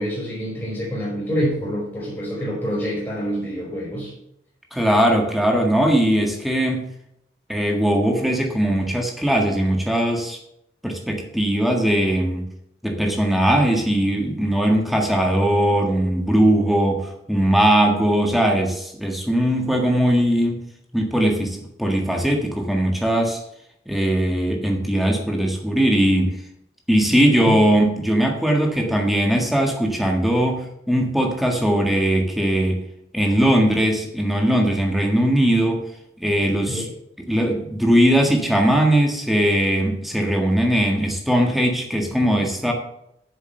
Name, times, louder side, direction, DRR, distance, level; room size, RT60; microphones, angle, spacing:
voice 1, 0.0-4.1 27.2-27.5 36.7-36.9, equal, 15° left, -6 dB, 4.3 m, -27 dB
voice 2, 4.7-6.9 7.5-10.4 10.8-12.4 12.8-20.6 20.9-23.4 23.9-26.4 26.9-32.8 33.1-35.8 36.2-36.8 37.3-42.7, right 1 dB, ahead, 1 dB, 1.6 m, -20 dB
8.7 x 7.1 x 6.7 m, 0.77 s
head